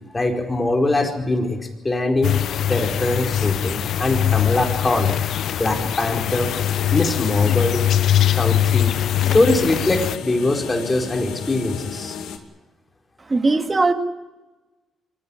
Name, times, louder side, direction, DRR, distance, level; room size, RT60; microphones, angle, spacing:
voice 1, 0.1-2.4 2.7-5.1 5.6-6.5 6.9-7.8 8.3-9.0 9.3-12.1, left 2 dB, 20° left, 2 dB, 4.7 m, -22 dB
sound 1, 2.2-10.2, left 10 dB, 70° left, 0.6 m, -22 dB
sound 2, 6.3-12.4, left 7 dB, 85° left, 2.6 m, -34 dB
voice 2, 13.3-13.9, right 3 dB, 25° right, 6 dB, 2.2 m, -18 dB
24.0 x 15.5 x 10.0 m, 1.1 s
cardioid pair, 90°, 0 cm